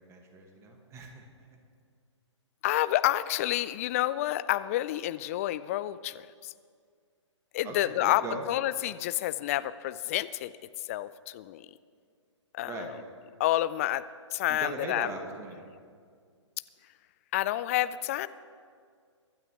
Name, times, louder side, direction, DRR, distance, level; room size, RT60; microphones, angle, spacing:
voice 1, 0.0-1.6 7.6-8.4 12.6-12.9 14.5-15.7, right 2 dB, 15° right, 2 dB, 1.6 m, -40 dB
voice 2, 2.6-6.5 7.5-10.5 10.9-11.7 12.5-12.9 13.4-14.0 14.3-15.1 17.3-18.3, left 14 dB, 30° left, 16 dB, 0.4 m, -29 dB
24.5 x 12.5 x 3.0 m, 2.1 s
figure-of-eight pair, 130°, 16 cm